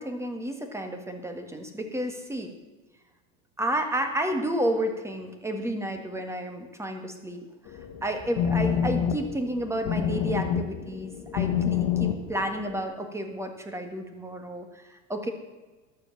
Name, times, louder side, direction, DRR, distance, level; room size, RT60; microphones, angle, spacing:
voice 1, 0.0-2.5 3.6-7.4 8.0-15.3, right 1 dB, 5° right, 5 dB, 1.7 m, -31 dB
sound 1, 7.7-12.8, left 8 dB, 55° left, 1.6 m, -28 dB
12.5 x 7.5 x 7.2 m, 1.3 s
hypercardioid pair, 105°, 42 cm